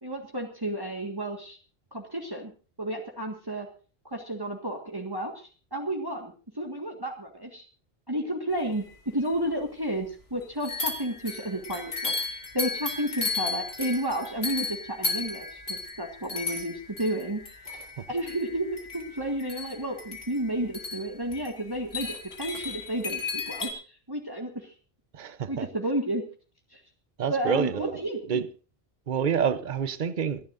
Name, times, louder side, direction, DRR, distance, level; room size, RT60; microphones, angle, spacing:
voice 1, 0.0-1.6 1.9-2.5 2.8-3.7 4.1-7.7 8.1-8.8 9.1-17.4 18.1-23.8 24.1-24.7 25.5-26.2 26.7-26.8 27.3-28.4, right 1 dB, 20° right, 1.8 m, -32 dB
sound 1, 8.9-9.0 9.3-9.4 10.6-23.7, left 3 dB, 85° left, 3.2 m, -35 dB
voice 2, 25.2-25.7 27.2-27.9 28.3-28.4 29.1-30.4, right 7 dB, 50° right, 1.0 m, -27 dB
27.0 x 11.0 x 2.6 m
omnidirectional pair, 1.0 m